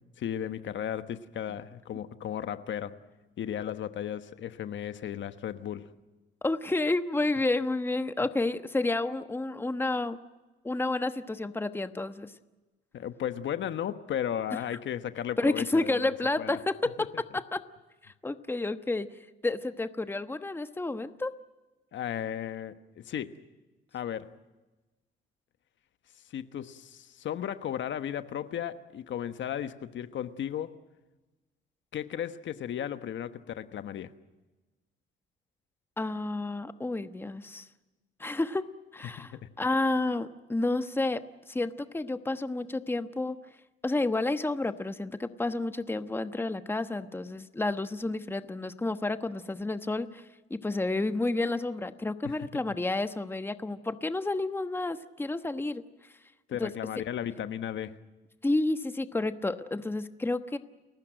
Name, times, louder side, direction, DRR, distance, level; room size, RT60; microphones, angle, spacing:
voice 1, 0.0-3.0 3.4-5.9 12.9-16.6 17.0-17.1 21.9-23.4 23.9-24.3 26.1-30.8 31.9-34.1 39.0-39.4 52.2-52.6 56.5-58.0, left 10 dB, 60° left, 1.2 m, -35 dB
voice 2, 6.4-10.2 10.6-12.3 15.4-17.6 18.0-19.1 19.4-21.3 36.0-37.7 38.2-38.6 38.9-39.3 39.6-41.2 41.5-43.4 43.8-50.2 50.5-55.8 56.6-56.7 58.4-60.6, left 2 dB, 10° left, 1.1 m, -30 dB
30.0 x 15.5 x 9.1 m
cardioid pair, 95°, 21 cm